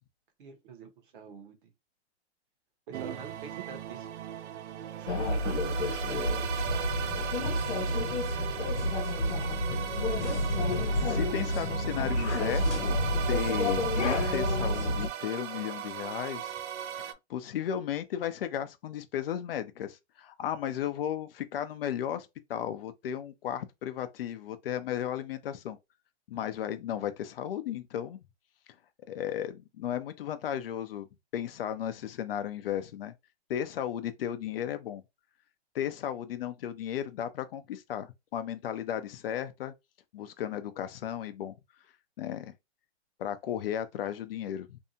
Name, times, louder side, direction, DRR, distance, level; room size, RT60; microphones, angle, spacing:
voice 1, 0.4-1.7 2.9-4.1 5.0-8.1, right 6 dB, 50° right, 0.8 m, -47 dB
sound 1, 2.9-17.1, right 10 dB, 80° right, 0.5 m, -37 dB
sound 2, 5.1-15.1, left 1 dB, 85° left, 0.9 m, -29 dB
voice 2, 11.0-13.0 13.3-16.5 17.1-25.8 26.3-28.2 29.1-31.1 31.3-33.1 33.5-35.0 35.7-39.7 40.1-41.6 42.2-42.5 43.2-44.8, left 10 dB, 55° left, 0.5 m, -35 dB
2.7 x 2.2 x 2.6 m
hypercardioid pair, 145°, 34 cm